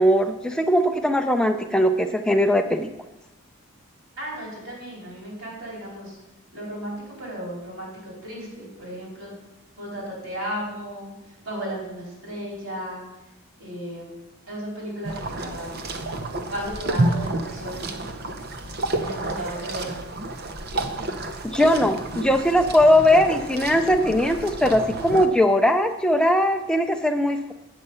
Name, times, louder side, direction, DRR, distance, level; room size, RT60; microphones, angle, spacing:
voice 1, 0.0-2.9 21.4-27.5, equal, 5° left, 5 dB, 0.5 m, -20 dB
voice 2, 4.2-6.2 6.5-9.3 9.8-13.0 13.6-14.1 14.5-15.7 16.5-18.1 18.9-20.0, equal, 60° right, -4 dB, 4.2 m, -35 dB
sound 1, 15.0-25.3, right 2 dB, 45° right, 0.8 m, -30 dB
8.1 x 7.6 x 5.6 m, 0.98 s
head